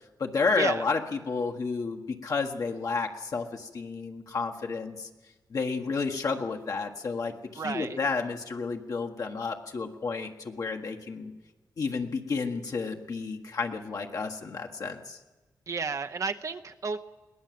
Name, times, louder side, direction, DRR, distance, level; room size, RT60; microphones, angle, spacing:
voice 1, 0.2-5.1 5.5-11.3 11.8-15.2, left 4 dB, 55° left, 2 dB, 1.5 m, -31 dB
voice 2, 7.6-8.0 15.7-17.0, right 4 dB, 50° right, 8 dB, 0.8 m, -32 dB
21.5 x 17.5 x 7.8 m, 1.2 s
cardioid pair, 90°, 7 cm